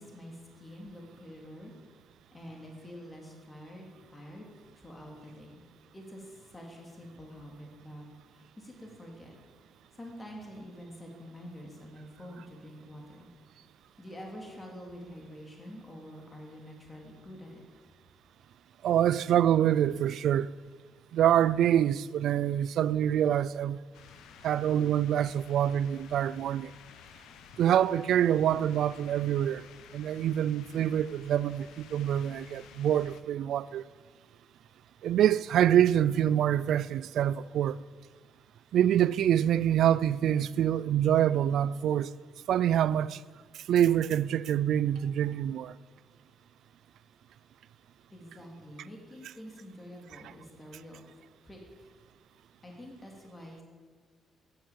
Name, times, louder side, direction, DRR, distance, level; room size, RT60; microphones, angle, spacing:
voice 1, 0.0-1.7 2.3-5.6 5.9-8.1 8.3-9.3 9.9-13.3 14.0-17.6 48.1-51.0 51.4-51.6 52.6-53.6, equal, 15° left, 3.2 m, -47 dB
voice 2, 18.8-20.5 21.1-23.8 24.4-26.7 27.6-29.7 29.9-33.8 35.0-37.8 38.7-42.1 42.5-43.2 43.7-45.8, right 10 dB, 65° right, 0.4 m, -26 dB
sound 1, 23.9-33.2, left 8 dB, 85° left, 1.1 m, -53 dB
16.0 x 11.5 x 7.5 m
cardioid pair, 150°, 0 cm